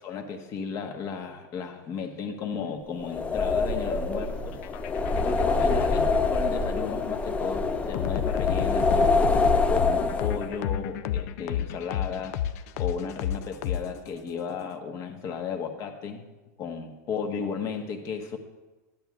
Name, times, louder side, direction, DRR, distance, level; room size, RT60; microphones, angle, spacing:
voice 1, 0.0-4.5 5.2-9.2 9.7-12.4 12.8-16.3 16.6-18.4, left 6 dB, 35° left, 4 dB, 1.3 m, -34 dB
sound 1, 3.0-10.6, left 3 dB, 15° left, 0.6 m, -25 dB
sound 2, 4.5-14.3, left 10 dB, 60° left, 0.5 m, -32 dB
12.5 x 10.5 x 2.4 m, 1.2 s
hypercardioid pair, 125°, 9 cm